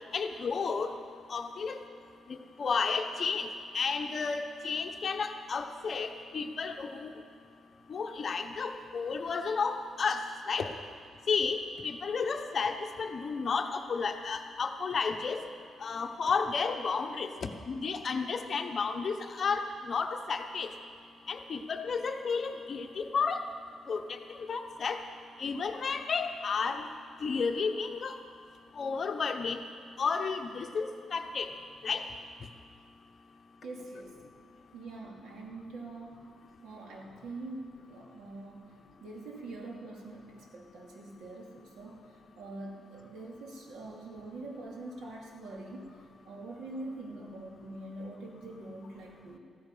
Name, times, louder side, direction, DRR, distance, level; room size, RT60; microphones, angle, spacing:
voice 1, 0.1-0.9 1.3-1.8 2.3-3.5 3.7-7.1 7.9-10.7 11.3-11.6 11.8-15.4 15.8-20.7 21.3-23.4 23.9-25.0 25.4-26.9 27.2-28.1 28.8-29.6 30.0-31.5 31.8-32.0, left 5 dB, 40° left, 6 dB, 1.0 m, -32 dB
voice 2, 33.6-34.2 34.7-36.3 36.6-45.9 46.2-49.4, right 2 dB, 90° right, -1 dB, 2.7 m, -44 dB
15.0 x 13.0 x 5.6 m, 2.2 s
cardioid pair, 145°, 0 cm